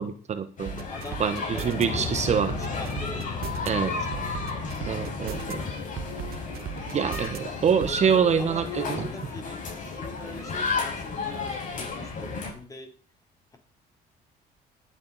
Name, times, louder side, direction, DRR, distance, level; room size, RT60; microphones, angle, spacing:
voice 1, 0.0-0.7 1.2-2.5 3.7-3.9 4.9-5.6 6.9-9.1, right 7 dB, 40° right, 9 dB, 1.2 m, -25 dB
sound 1, 0.6-12.5, left 4 dB, 50° left, 5.9 m, -34 dB
voice 2, 0.7-3.5 5.2-5.7 7.8-8.0 8.4-13.0 13.5-13.6, left 2 dB, 20° left, 4 dB, 3.4 m, -42 dB
sound 2, 0.7-1.8 2.3-3.7 4.1-5.5 6.0-7.4 7.8-8.0, right 11 dB, 65° right, 1.3 m, -37 dB
Piano, 1.8-9.8, left 4 dB, 80° left, 4.7 m, -38 dB
18.5 x 8.6 x 4.1 m, 0.40 s
cardioid pair, 110°, 17 cm